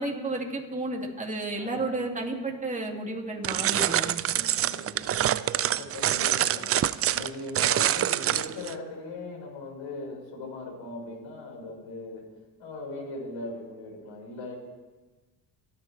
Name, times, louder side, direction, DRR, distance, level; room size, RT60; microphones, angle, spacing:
voice 1, 0.0-4.2, right 2 dB, 15° right, 0 dB, 2.8 m, -32 dB
voice 2, 1.6-2.0 4.3-6.8 7.1-12.2 12.6-14.5, left 2 dB, 65° left, -3 dB, 5.5 m, -40 dB
sound 1, 3.4-8.7, right 11 dB, 30° right, 0.4 m, -26 dB
26.5 x 9.8 x 3.5 m, 1.2 s
hypercardioid pair, 65°, 48 cm